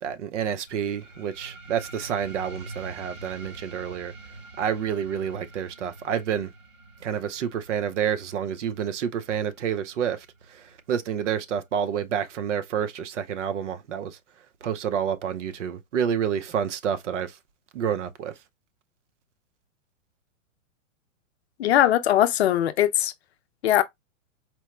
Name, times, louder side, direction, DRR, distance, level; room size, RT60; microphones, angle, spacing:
voice 1, 0.0-4.1 4.6-6.5 7.0-14.2 14.6-17.4 17.7-18.3, right 8 dB, 65° right, 0.8 m, -29 dB
sound 1, 0.7-11.7, right 2 dB, 80° right, 2.9 m, -46 dB
voice 2, 21.6-23.1 23.6-23.8, left 12 dB, 55° left, 0.6 m, -20 dB
4.5 x 2.1 x 3.2 m
hypercardioid pair, 160°, 39 cm